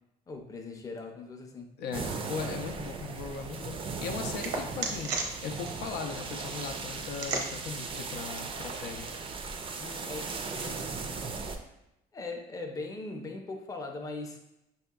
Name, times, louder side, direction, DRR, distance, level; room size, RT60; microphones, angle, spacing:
voice 1, 0.3-1.7 9.8-10.8 12.1-14.4, left 3 dB, 20° left, 3 dB, 0.5 m, -40 dB
voice 2, 1.8-5.2 5.4-9.1, left 5 dB, 90° left, 3 dB, 0.5 m, -38 dB
sound 1, 1.9-11.6, right 4 dB, 30° right, 0.4 m, -38 dB
sound 2, 2.6-9.4, right 4 dB, 75° right, 0.7 m, -40 dB
5.7 x 2.8 x 2.3 m, 0.86 s
cardioid pair, 110°, 17 cm